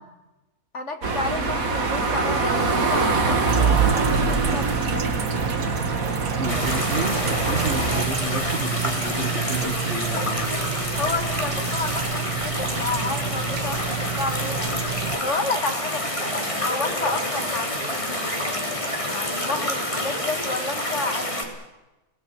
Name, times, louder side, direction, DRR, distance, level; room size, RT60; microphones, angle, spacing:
voice 1, 0.7-5.1 10.1-10.6 11.0-14.8 15.2-21.6, left 3 dB, 45° left, 7 dB, 2.2 m, -31 dB
sound 1, 1.0-8.0, right 4 dB, 60° right, 2.6 m, -23 dB
sound 2, 3.4-15.2, right 7 dB, 85° right, 2.0 m, -30 dB
voice 2, 6.4-10.6, right 4 dB, 40° right, 7 dB, 1.7 m, -30 dB
sound 3, 6.5-21.5, left 1 dB, 20° left, 4.0 m, -28 dB
29.0 x 19.5 x 6.6 m, 1.1 s
omnidirectional pair, 1.7 m